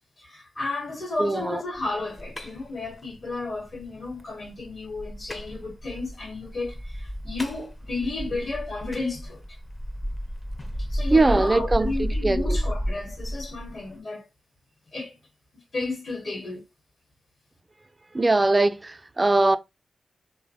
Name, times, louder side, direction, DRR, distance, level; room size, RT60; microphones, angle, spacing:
voice 1, 0.2-9.4 10.9-14.2 14.9-15.2 15.7-16.6, left 3 dB, 60° left, 0.9 m, -33 dB
voice 2, 1.2-1.6 11.1-12.6 18.1-19.6, right 2 dB, 30° right, 0.3 m, -21 dB
sound 1, 1.8-13.9, equal, 25° left, 0.5 m, -32 dB
3.0 x 2.0 x 2.6 m
cardioid pair, 45°, 0 cm